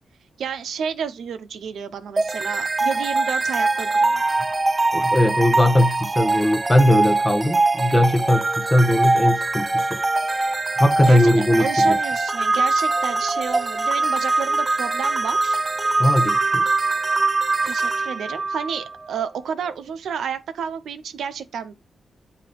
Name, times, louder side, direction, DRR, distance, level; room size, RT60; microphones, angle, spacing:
voice 1, 0.4-4.4 11.1-15.6 17.6-21.7, right 7 dB, 85° right, 0.6 m, -31 dB
sound 1, 2.2-19.3, right 3 dB, 25° right, 0.3 m, -22 dB
voice 2, 4.9-10.0 10.8-12.0 16.0-16.6, left 1 dB, 15° left, 0.8 m, -19 dB
7.5 x 2.8 x 5.1 m
wide cardioid pair, 110°, 0 cm